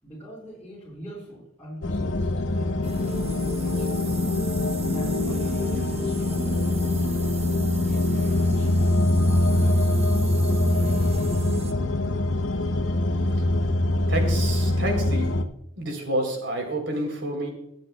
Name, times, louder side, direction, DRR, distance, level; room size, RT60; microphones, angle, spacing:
voice 1, 0.0-4.1 4.7-6.8 7.7-8.7 9.2-10.2 10.9-11.2, right 1 dB, 10° left, -7 dB, 4.7 m, -43 dB
sound 1, 1.8-15.4, left 1 dB, 90° left, 0.8 m, -23 dB
sound 2, 2.8-11.7, right 2 dB, 30° right, 1.0 m, -34 dB
voice 2, 14.1-15.3 15.8-17.5, right 1 dB, 70° right, 2 dB, 3.6 m, -29 dB
22.5 x 8.1 x 2.3 m, 0.83 s
head